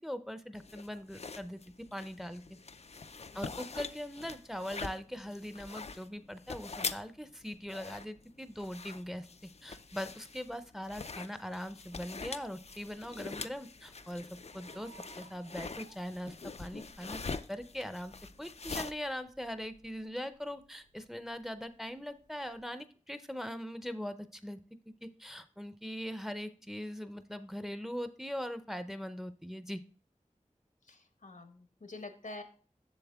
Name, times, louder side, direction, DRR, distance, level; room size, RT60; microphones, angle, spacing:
voice 1, 0.0-1.6 1.9-2.4 3.3-9.3 9.6-14.9 15.2-17.2 17.5-18.1 18.4-24.6 24.9-29.8, equal, 5° right, 11 dB, 0.6 m, -41 dB
sound 1, 0.6-18.9, left 4 dB, 55° left, 0.4 m, -44 dB
voice 2, 3.3-3.6 30.8-32.4, left 2 dB, 80° left, 7 dB, 1.1 m, -47 dB
sound 2, 12.5-22.6, right 3 dB, 80° right, 1.6 m, -63 dB
7.2 x 6.9 x 3.5 m, 0.40 s
wide cardioid pair, 45°, 13 cm